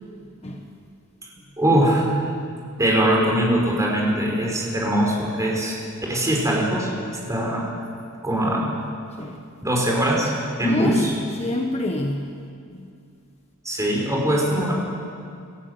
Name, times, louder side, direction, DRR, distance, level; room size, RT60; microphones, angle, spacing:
voice 1, 1.6-2.1 2.8-5.8 6.1-7.7 8.2-8.6 9.6-10.3 10.6-11.1 13.6-14.7, right 1 dB, 15° right, -2 dB, 4.9 m, -21 dB
voice 2, 10.6-12.4 12.7-12.9, left 1 dB, 30° left, 2 dB, 1.3 m, -27 dB
27.0 x 14.5 x 8.1 m, 2.3 s
head